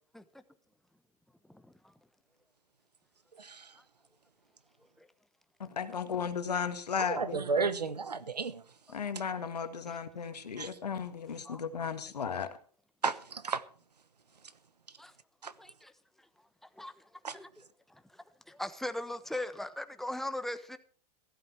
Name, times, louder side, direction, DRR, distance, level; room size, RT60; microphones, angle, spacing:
voice 1, 5.6-7.8 8.9-12.6, left 6 dB, 80° left, 1.9 m, -35 dB
voice 2, 7.0-8.6 10.6-10.7 13.0-13.6 15.4-15.5 17.2-17.3, right 4 dB, 90° right, 1.1 m, -33 dB
voice 3, 15.6-15.9 16.8-16.9 17.3-17.5 17.9-20.8, left 1 dB, ahead, 1.1 m, -39 dB
15.0 x 13.0 x 4.6 m
hypercardioid pair, 105°, 20 cm